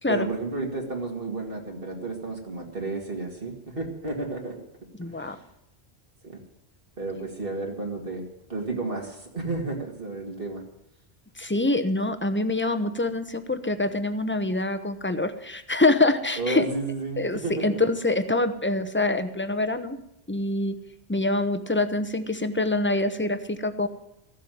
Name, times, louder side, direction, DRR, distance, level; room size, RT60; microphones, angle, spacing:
voice 1, 0.1-4.6 5.1-5.4 6.2-6.4 7.0-8.2 8.5-10.6 16.4-17.8, right 3 dB, 55° right, 1 dB, 2.6 m, -32 dB
voice 2, 5.0-5.4 11.4-16.6 17.2-20.0 20.3-20.8 21.1-23.9, left 2 dB, 10° left, 9 dB, 0.8 m, -25 dB
15.0 x 7.6 x 9.2 m, 0.83 s
omnidirectional pair, 1.1 m